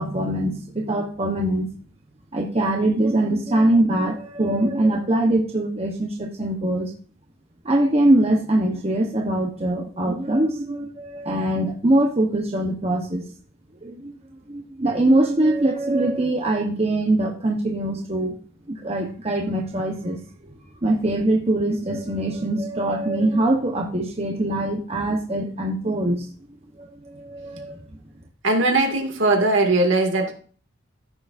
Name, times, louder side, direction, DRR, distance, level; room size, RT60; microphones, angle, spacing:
voice 1, 0.0-1.7 2.3-6.9 7.6-13.2 13.8-14.1 14.5-18.4 18.7-20.2 20.8-26.3 26.8-27.8, right 1 dB, 30° right, 1 dB, 1.1 m, -22 dB
voice 2, 28.4-30.3, right 2 dB, 70° right, 2 dB, 2.4 m, -19 dB
14.5 x 6.7 x 2.6 m, 0.41 s
head